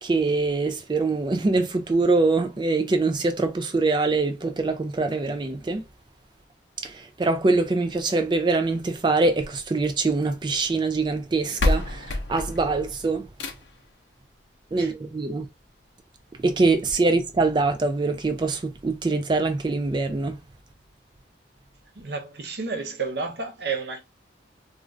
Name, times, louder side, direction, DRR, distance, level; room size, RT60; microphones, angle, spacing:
voice 1, 0.0-5.8 6.8-13.3 14.7-15.5 16.4-20.4, right 3 dB, 25° right, 0.3 m, -24 dB
sound 1, 9.2-10.4 11.2-11.3 11.6-13.9 15.2-15.3 15.8-15.9 16.2-16.3 16.8-16.9, left 2 dB, 75° left, 0.6 m, -28 dB
voice 2, 22.0-24.0, right 4 dB, 65° right, 0.8 m, -31 dB
2.5 x 2.5 x 3.1 m
head